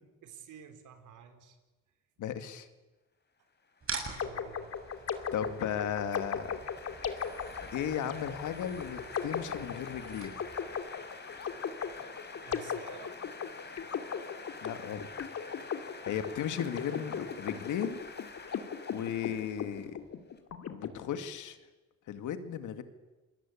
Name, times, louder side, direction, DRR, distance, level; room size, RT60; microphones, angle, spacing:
voice 1, 0.2-1.6 4.2-4.8 12.3-13.1, right 8 dB, 80° right, 7 dB, 4.2 m, -51 dB
voice 2, 2.2-2.7 5.3-6.6 7.7-10.3 14.6-15.3 16.0-18.0 18.9-20.0 20.7-21.6 22.1-22.8, left 9 dB, 80° left, 9 dB, 2.3 m, -35 dB
sound 1, 3.7-20.4, left 4 dB, 35° left, 4.3 m, -48 dB
sound 2, 3.8-10.8, right 4 dB, 45° right, 7.4 m, -45 dB
sound 3, 4.2-20.9, left 7 dB, 55° left, 2.5 m, -38 dB
28.5 x 21.5 x 8.7 m, 1.1 s
cardioid pair, 90°, 30 cm